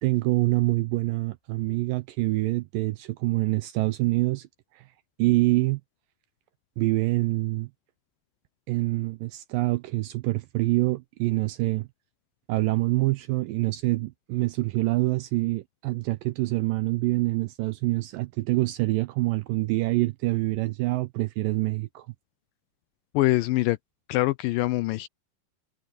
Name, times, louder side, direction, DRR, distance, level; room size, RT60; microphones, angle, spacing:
voice 1, 0.0-4.5 4.7-4.8 5.2-5.8 6.8-7.7 8.7-11.9 12.5-22.1, right 20 dB, 80° right, 2.0 m, -26 dB
voice 2, 23.1-23.8 24.1-25.1, left 18 dB, 85° left, 2.0 m, -24 dB
omnidirectional pair, 4.5 m